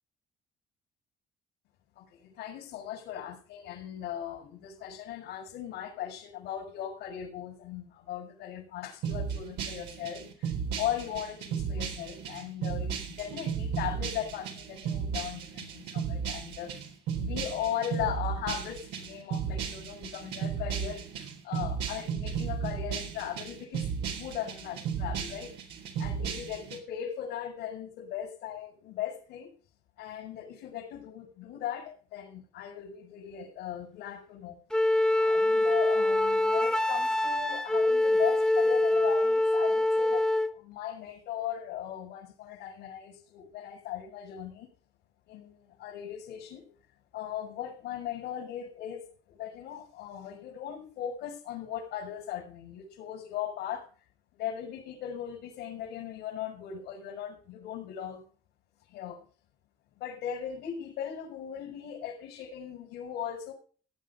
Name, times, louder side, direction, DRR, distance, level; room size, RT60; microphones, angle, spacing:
voice 1, 2.0-23.9 24.1-25.5 26.0-29.5 30.0-34.6 35.2-40.3 40.5-44.7 45.3-46.7 47.1-53.9 54.3-58.2 58.9-59.3 59.9-63.5, left 10 dB, 85° left, -3 dB, 5.5 m, -38 dB
sound 1, 9.0-26.8, right 7 dB, 90° right, 3.8 m, -35 dB
Wind instrument woodwind instrument, 34.7-40.5, left 1 dB, 5° left, 1.1 m, -25 dB
17.0 x 9.2 x 5.5 m, 0.41 s
cardioid pair, 110°, 17 cm